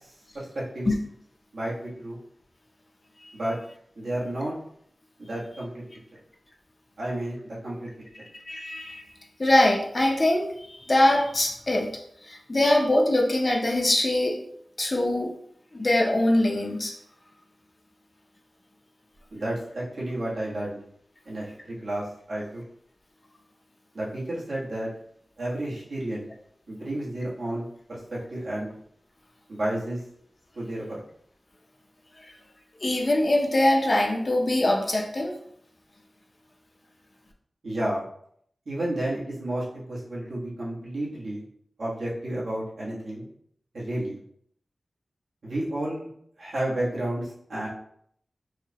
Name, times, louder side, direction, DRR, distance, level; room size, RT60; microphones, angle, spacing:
voice 1, 0.3-0.9 1.5-2.2 3.3-3.6 4.0-4.5 5.3-5.7 7.0-7.9 19.3-20.8 21.2-22.6 23.9-24.9 25.4-26.3 26.7-28.7 29.5-30.0 30.5-30.9 37.6-38.0 38.6-41.4 41.8-43.3 43.7-44.2 45.4-46.1 46.4-47.7, right 1 dB, 80° right, -7 dB, 1.3 m, -31 dB
voice 2, 8.5-9.0 9.4-11.9 12.3-14.4 14.8-15.3 15.7-16.9 32.8-35.4, left 1 dB, 35° left, 1 dB, 0.6 m, -23 dB
4.7 x 2.2 x 2.8 m, 0.67 s
wide cardioid pair, 105°, 0 cm